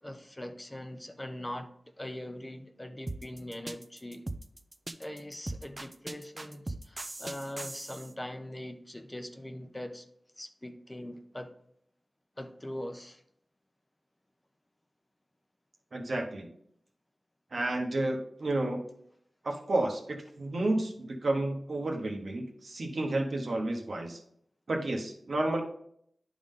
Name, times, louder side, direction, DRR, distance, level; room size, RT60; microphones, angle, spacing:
voice 1, 0.0-1.7 2.0-4.2 5.0-10.1 10.4-11.5 12.4-13.2, left 1 dB, 20° left, 0.7 m, -41 dB
sound 1, 3.1-8.1, right 2 dB, 35° right, 0.4 m, -39 dB
voice 2, 15.9-16.5 17.5-18.8 19.4-24.2 24.7-25.6, right 2 dB, 70° right, 1.2 m, -31 dB
10.5 x 3.7 x 3.7 m
wide cardioid pair, 75°, 0 cm